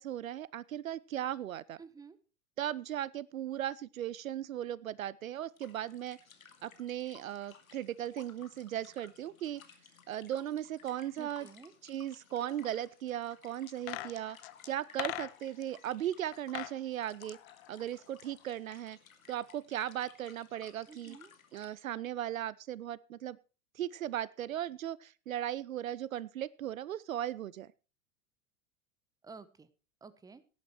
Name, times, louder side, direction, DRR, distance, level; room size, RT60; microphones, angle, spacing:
voice 1, 0.0-1.8 2.6-6.2 6.6-9.6 10.1-11.5 11.8-14.4 14.6-17.4 17.7-19.0 19.3-21.2 21.5-23.4 23.7-27.7, right 11 dB, 70° right, 22 dB, 0.6 m, -37 dB
voice 2, 1.8-2.2 11.2-11.7 20.9-21.3 29.2-29.7 30.0-30.4, right 4 dB, 10° right, 15 dB, 0.9 m, -51 dB
sound 1, 5.5-21.7, left 7 dB, 70° left, 2.3 m, -59 dB
sound 2, 13.7-15.7 16.3-16.8 17.1-18.4 18.7-18.8, left 17 dB, 45° left, 0.8 m, -41 dB
17.5 x 10.5 x 3.0 m, 0.33 s
figure-of-eight pair, 90°, 43 cm